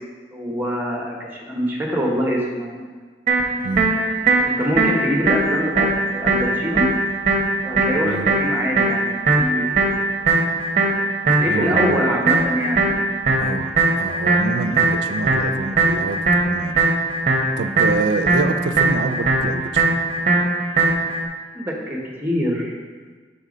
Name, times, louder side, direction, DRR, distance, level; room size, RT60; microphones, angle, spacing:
voice 1, 0.3-2.9 4.5-6.9 7.6-9.9 11.4-12.9 21.5-22.7, equal, 10° right, -2 dB, 0.9 m, -24 dB
sound 1, 3.3-21.2, right 3 dB, 40° right, 0.8 m, -20 dB
voice 2, 11.4-12.1 13.4-16.8 17.6-20.0, right 4 dB, 75° right, 8 dB, 0.4 m, -26 dB
5.5 x 4.2 x 5.0 m, 1.5 s
head